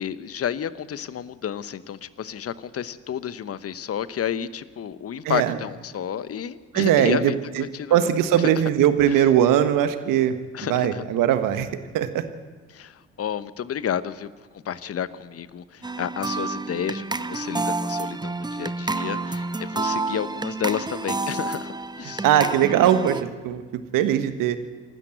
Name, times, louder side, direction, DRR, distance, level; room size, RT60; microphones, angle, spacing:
voice 1, 0.0-7.4 7.7-8.1 9.1-9.3 10.5-11.0 12.7-14.3 14.6-22.2, left 9 dB, 40° left, 15 dB, 1.0 m, -31 dB
voice 2, 5.2-5.6 6.7-7.6 7.9-10.3 10.7-11.7 11.9-12.2 22.1-23.6 23.9-24.6, right 10 dB, 65° right, 10 dB, 1.6 m, -20 dB
sound 1, 15.8-23.2, right 3 dB, 10° right, 0.9 m, -29 dB
27.0 x 13.0 x 8.0 m, 1.4 s
hypercardioid pair, 55°, 35 cm